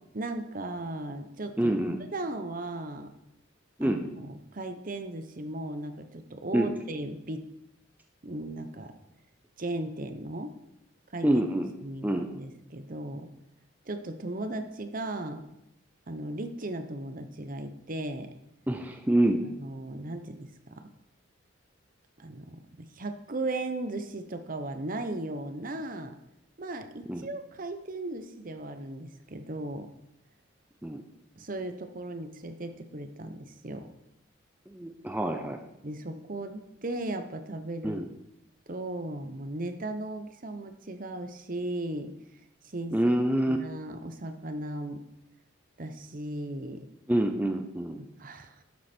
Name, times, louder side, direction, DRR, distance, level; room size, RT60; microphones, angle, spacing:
voice 1, 0.1-1.8 2.1-3.1 3.8-7.4 8.2-9.0 9.6-10.5 11.1-11.4 11.8-12.1 12.3-13.3 13.9-15.4 16.1-18.3 19.4-20.9 22.2-26.2 26.6-29.9 31.4-33.9 35.8-38.0 38.7-42.1 42.6-43.0 43.5-45.0 45.8-46.8 48.2-48.5, right 2 dB, 40° right, 8 dB, 0.9 m, -36 dB
voice 2, 1.6-2.0 3.8-4.0 6.5-6.7 11.2-11.7 12.0-12.3 18.7-19.4 27.1-27.2 30.8-31.0 34.7-35.6 37.8-38.1 42.9-43.6 47.1-48.0, right 1 dB, 10° right, 4 dB, 0.6 m, -26 dB
11.5 x 7.7 x 4.4 m, 0.83 s
head